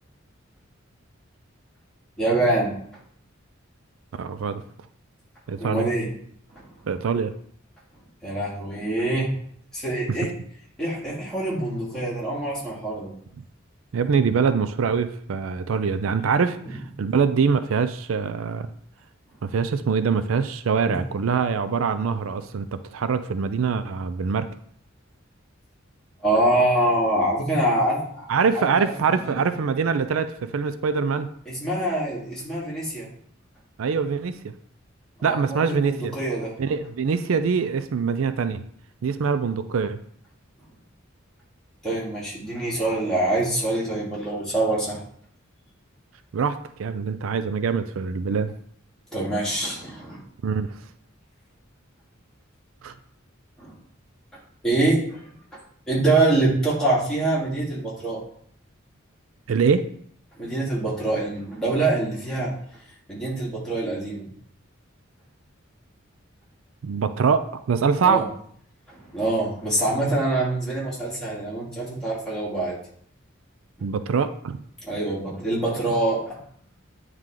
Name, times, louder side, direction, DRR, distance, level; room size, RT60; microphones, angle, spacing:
voice 1, 2.2-2.7 5.5-6.1 6.5-6.7 8.2-9.3 9.7-10.3 10.8-13.1 16.6-16.7 26.2-29.4 31.5-33.1 35.2-36.5 41.8-45.0 49.1-50.2 53.6-53.7 54.6-55.2 55.9-58.2 60.4-62.5 63.1-64.3 68.0-68.2 68.9-72.8 74.8-76.4, right 2 dB, 5° left, -7 dB, 2.3 m, -25 dB
voice 2, 4.2-4.6 5.5-5.9 6.9-7.3 13.9-18.7 19.4-24.5 28.3-31.3 33.8-34.5 35.2-36.1 36.6-38.6 39.0-40.0 46.3-48.5 50.4-50.7 52.8-52.9 59.5-59.9 66.8-68.2 73.8-74.6, right 5 dB, 85° right, 11 dB, 0.4 m, -24 dB
9.1 x 3.2 x 3.7 m, 0.63 s
head